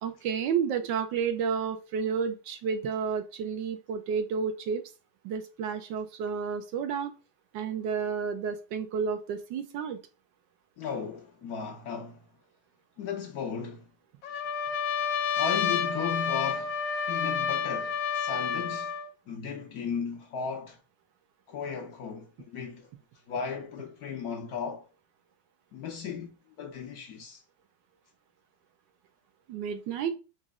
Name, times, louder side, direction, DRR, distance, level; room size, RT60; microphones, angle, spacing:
voice 1, 0.0-4.8 5.2-7.1 7.5-10.0 29.5-30.2, right 6 dB, 75° right, 1.3 m, -31 dB
voice 2, 10.8-12.3 13.0-13.9 14.3-14.4 15.4-16.8 17.1-18.9 19.3-20.8 21.5-22.9 23.3-24.9 25.7-27.4, left 6 dB, 65° left, 1.0 m, -36 dB
Trumpet, 14.2-19.1, left 7 dB, 85° left, 0.7 m, -29 dB
4.1 x 3.0 x 3.5 m
omnidirectional pair, 2.1 m